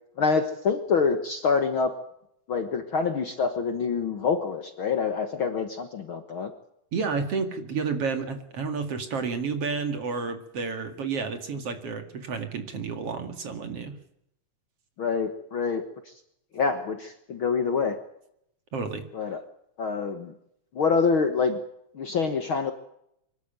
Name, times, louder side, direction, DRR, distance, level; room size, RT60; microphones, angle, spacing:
voice 1, 0.2-1.9 2.5-6.5 15.0-15.8 16.5-18.0 19.1-19.4 19.8-20.3 20.7-21.6 21.9-22.7, left 5 dB, 50° left, 8 dB, 1.7 m, -26 dB
voice 2, 6.9-13.9 18.7-19.1, right 5 dB, 50° right, 8 dB, 3.0 m, -30 dB
25.0 x 12.5 x 9.1 m, 0.75 s
omnidirectional pair, 3.6 m